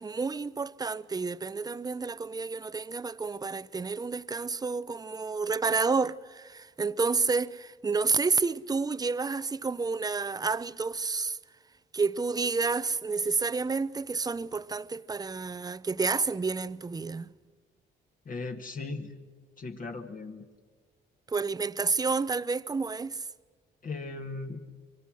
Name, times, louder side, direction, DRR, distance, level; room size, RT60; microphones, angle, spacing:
voice 1, 0.0-11.4 11.9-17.3 21.3-23.3, right 4 dB, 20° right, 0.6 m, -30 dB
voice 2, 18.3-19.1 19.6-20.5 23.8-24.6, left 3 dB, 45° left, 1.8 m, -37 dB
25.5 x 23.0 x 6.3 m
cardioid pair, 90°, 20 cm